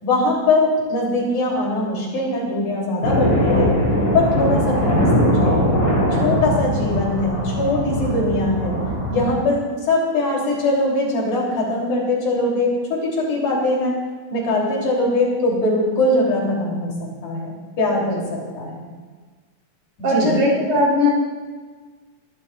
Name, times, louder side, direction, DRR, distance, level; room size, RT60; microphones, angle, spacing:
voice 1, 0.0-3.7 4.1-5.6 6.2-8.8 9.1-9.6 9.9-14.0 14.3-18.9 20.0-20.4, left 2 dB, 75° left, -3 dB, 4.9 m, -21 dB
sound 1, 3.0-9.3, equal, 35° left, 4.8 m, -20 dB
voice 2, 20.0-21.1, left 1 dB, 70° right, -5 dB, 5.4 m, -18 dB
26.5 x 13.0 x 2.5 m, 1.4 s
omnidirectional pair, 3.5 m